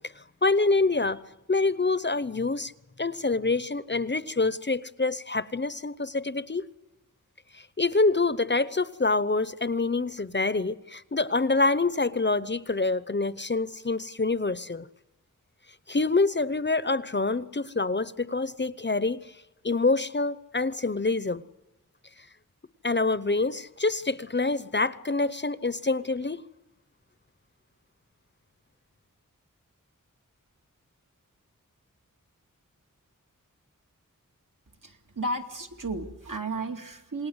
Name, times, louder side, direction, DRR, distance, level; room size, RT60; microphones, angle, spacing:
voice 1, 0.4-1.2 1.5-2.7 3.0-6.7 7.8-14.9 15.9-19.3 19.6-21.4 22.8-26.4, left 3 dB, 35° left, 16 dB, 0.8 m, -26 dB
voice 2, 34.8-37.3, right 2 dB, 70° right, 3 dB, 2.6 m, -33 dB
28.0 x 19.5 x 8.1 m, 0.99 s
wide cardioid pair, 65°, 33 cm